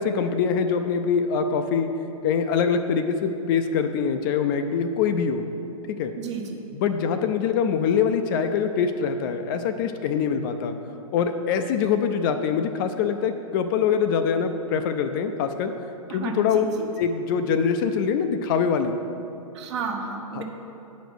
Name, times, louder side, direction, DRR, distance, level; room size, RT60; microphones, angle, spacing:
voice 1, 0.0-1.9 2.2-5.5 5.9-6.1 6.7-10.7 11.1-15.7 16.1-16.6 17.0-18.9 20.4-20.5, left 6 dB, 35° left, 7 dB, 0.5 m, -24 dB
voice 2, 6.2-6.6 16.1-16.9 19.5-20.4, right 5 dB, 50° right, 2 dB, 1.3 m, -32 dB
9.0 x 5.2 x 6.2 m, 3.0 s
hypercardioid pair, 130°, 18 cm